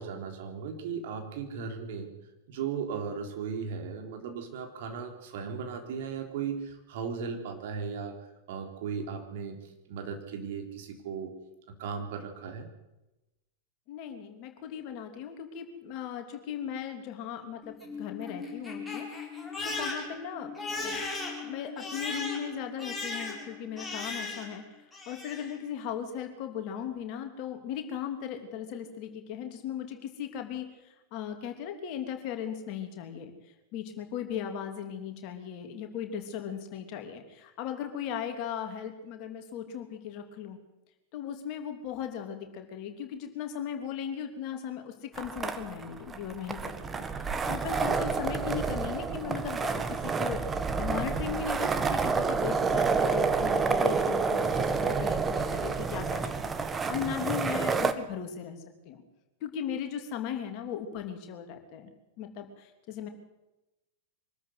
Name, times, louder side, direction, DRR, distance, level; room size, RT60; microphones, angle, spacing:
voice 1, 0.0-2.1 2.5-8.2 8.5-9.6 9.9-11.3 11.7-12.7, right 6 dB, 55° right, 4 dB, 3.6 m, -36 dB
voice 2, 13.9-19.1 19.6-21.0 21.4-24.6 25.1-33.3 33.7-40.6 41.1-58.6 58.8-59.0 59.4-61.9 62.2-63.1, left 8 dB, 40° left, 5 dB, 3.1 m, -37 dB
Crying sobbing, 17.6-24.6 24.9-25.6, left 3 dB, 10° left, 5.1 m, -37 dB
sound 1, 45.2-57.9, right 4 dB, 15° right, 1.5 m, -29 dB
24.0 x 13.5 x 8.1 m, 0.98 s
figure-of-eight pair, 90°, 0 cm